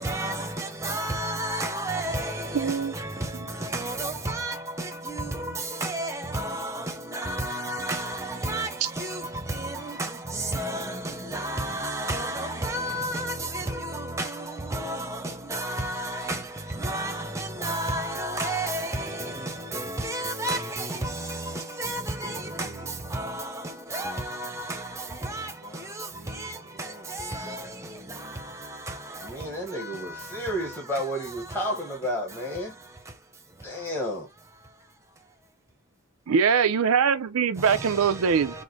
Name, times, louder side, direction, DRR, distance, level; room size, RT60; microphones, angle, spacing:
voice 1, 0.0-3.1 3.6-5.5 5.8-6.8 7.1-8.7 9.0-9.2 9.5-14.3 14.7-15.2 15.5-16.4 16.8-21.5 21.8-22.7 23.1-23.5 23.9-24.8 25.2-25.5 26.4-26.5 27.1-27.6, right 1 dB, 15° right, 0.7 m, -31 dB
voice 2, 2.5-2.9 36.3-38.6, right 6 dB, 80° right, 0.5 m, -22 dB
voice 3, 22.2-22.8 25.6-28.5 29.2-32.7 33.6-34.3, equal, 10° left, 1.0 m, -34 dB
4.8 x 2.1 x 3.7 m
head